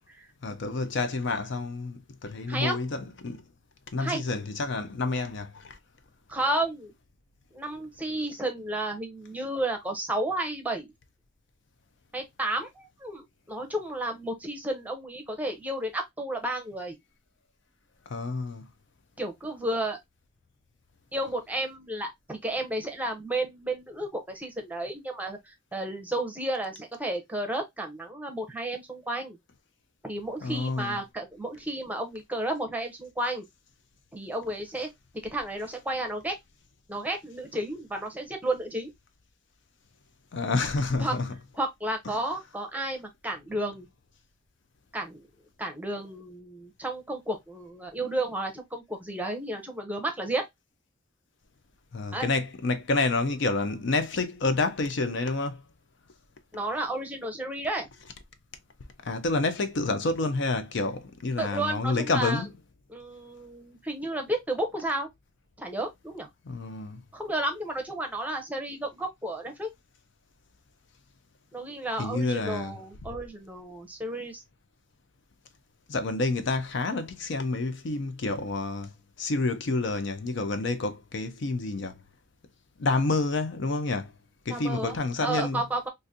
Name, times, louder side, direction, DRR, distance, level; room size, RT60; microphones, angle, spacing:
voice 1, 0.4-3.5 3.9-5.8 18.1-18.7 30.4-31.0 40.3-41.3 51.9-55.6 59.0-62.5 66.4-67.0 72.0-72.8 75.9-82.0 82.8-84.1 84.5-85.6, left 3 dB, 60° left, 0.5 m, -29 dB
voice 2, 6.3-6.9 7.5-10.9 12.1-16.9 19.2-20.0 21.1-29.4 30.0-33.5 34.1-34.9 35.3-36.4 36.9-38.9 41.0-41.1 41.5-43.9 44.9-45.3 45.6-50.5 52.1-52.3 56.5-57.9 61.4-62.4 62.9-65.1 65.6-66.3 67.1-69.7 71.5-74.4 84.5-85.9, right 1 dB, 10° right, 0.7 m, -32 dB
3.9 x 2.5 x 2.6 m
head